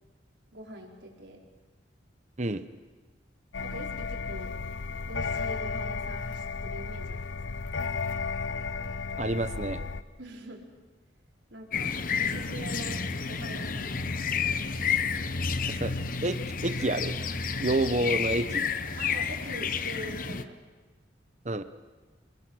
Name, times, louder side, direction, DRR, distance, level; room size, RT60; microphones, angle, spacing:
voice 1, 0.5-1.4 3.6-4.5 5.0-7.6 10.2-10.6 11.5-13.0 13.3-14.2 19.0-20.6, right 1 dB, 75° right, -1 dB, 4.7 m, -43 dB
sound 1, 3.5-10.0, left 4 dB, 85° left, 0.8 m, -33 dB
voice 2, 9.2-9.9 15.8-15.9 16.2-17.2 17.6-18.7 21.4-21.6, right 2 dB, 35° right, 10 dB, 0.9 m, -28 dB
sound 2, 11.7-20.4, left 5 dB, 45° left, 0.9 m, -30 dB
29.5 x 21.5 x 6.3 m, 1.3 s
head